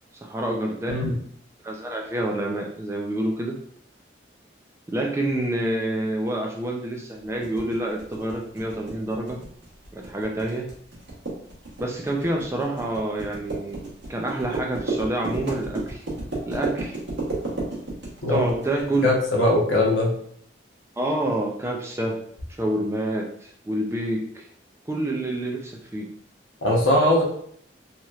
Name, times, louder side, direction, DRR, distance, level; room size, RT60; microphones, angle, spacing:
voice 1, 0.2-1.0 1.6-3.6 4.9-9.4 9.9-10.7 11.8-13.8 14.1-16.0 16.4-17.0 18.3-19.2 21.0-22.2 22.6-24.4 24.9-26.1, right 1 dB, 15° right, 0 dB, 0.3 m, -27 dB
sound 1, 7.4-19.0, right 2 dB, 70° right, 1.0 m, -32 dB
voice 2, 19.0-20.1 26.6-27.2, left 1 dB, 85° left, -2 dB, 0.8 m, -20 dB
3.0 x 2.8 x 2.3 m, 0.64 s
head